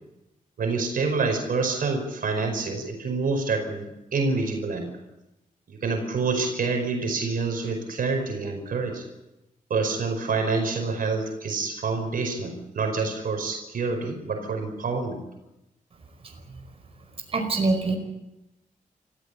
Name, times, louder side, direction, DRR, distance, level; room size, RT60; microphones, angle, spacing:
voice 1, 0.6-4.9 5.7-9.0 9.7-15.2, right 4 dB, 80° right, 4 dB, 5.1 m, -27 dB
voice 2, 16.2-16.6 17.3-18.0, right 3 dB, 40° right, 3 dB, 5.0 m, -25 dB
28.0 x 15.5 x 8.3 m, 0.95 s
wide cardioid pair, 135°, 14 cm